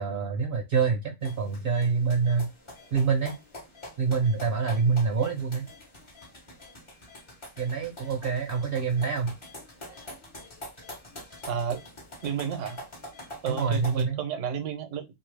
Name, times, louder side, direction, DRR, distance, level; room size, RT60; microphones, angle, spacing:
voice 1, 0.0-2.5 2.9-3.3 4.0-5.7 7.6-9.3 13.5-14.2, right 5 dB, 55° right, 0.7 m, -26 dB
sound 1, 1.2-14.0, left 1 dB, 30° left, 0.7 m, -45 dB
voice 2, 11.5-11.8 12.2-12.8 13.4-15.0, right 7 dB, 80° right, 1.1 m, -31 dB
2.7 x 2.6 x 3.2 m
omnidirectional pair, 1.3 m